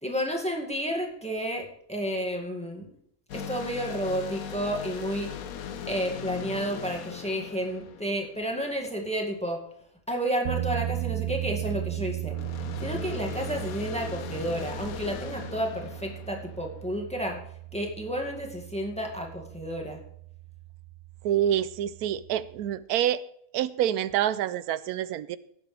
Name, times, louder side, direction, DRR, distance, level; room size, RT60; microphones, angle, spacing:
voice 1, 0.0-2.9 3.3-5.3 5.9-9.6 10.1-12.4 12.8-17.4 17.7-20.0, equal, 5° left, 1 dB, 1.9 m, -31 dB
sound 1, 3.3-8.8 12.3-17.0, left 8 dB, 75° left, 1.2 m, -39 dB
sound 2, 10.4-22.8, right 17 dB, 60° right, 0.7 m, -37 dB
voice 2, 21.2-23.2 23.5-25.4, right 11 dB, 90° right, 16 dB, 1.1 m, -27 dB
18.5 x 7.9 x 3.3 m, 0.71 s
omnidirectional pair, 1.5 m